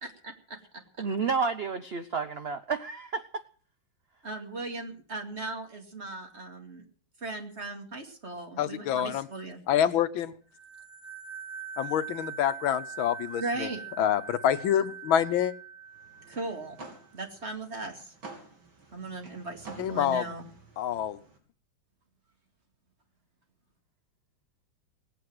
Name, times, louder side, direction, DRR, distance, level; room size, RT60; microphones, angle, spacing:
voice 1, 0.0-0.8 4.2-6.8 7.2-9.6 13.4-13.8 16.3-16.8 17.1-18.1 18.9-20.4, right 2 dB, 35° right, 4 dB, 2.6 m, -38 dB
voice 2, 1.0-3.2, right 5 dB, 55° right, 10 dB, 0.7 m, -30 dB
voice 3, 8.6-9.3 9.7-10.3 11.8-13.7 14.0-15.5 19.8-20.2 20.8-21.2, left 10 dB, 85° left, 12 dB, 1.7 m, -27 dB
sound 1, 10.5-17.0, right 7 dB, 50° left, 1.8 m, -43 dB
sound 2, 15.9-21.4, right 3 dB, 85° right, 4.1 m, -50 dB
18.5 x 8.8 x 7.7 m, 0.43 s
omnidirectional pair, 2.1 m